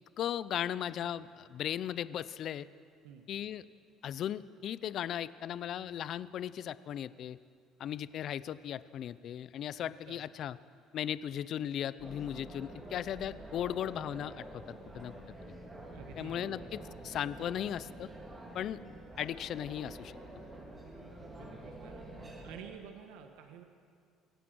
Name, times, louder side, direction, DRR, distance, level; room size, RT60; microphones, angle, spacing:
voice 1, 0.2-2.7 3.3-3.6 4.0-7.4 7.8-10.6 10.9-15.2 16.2-18.1 18.5-18.8 19.2-20.2, left 10 dB, 50° left, 16 dB, 0.6 m, -37 dB
voice 2, 9.8-10.2 15.9-16.7 21.4-23.6, right 8 dB, 85° right, 5 dB, 1.5 m, -51 dB
sound 1, 12.0-22.6, right 1 dB, 20° right, 4.0 m, -48 dB
24.5 x 17.5 x 6.2 m, 2.2 s
cardioid pair, 125°, 0 cm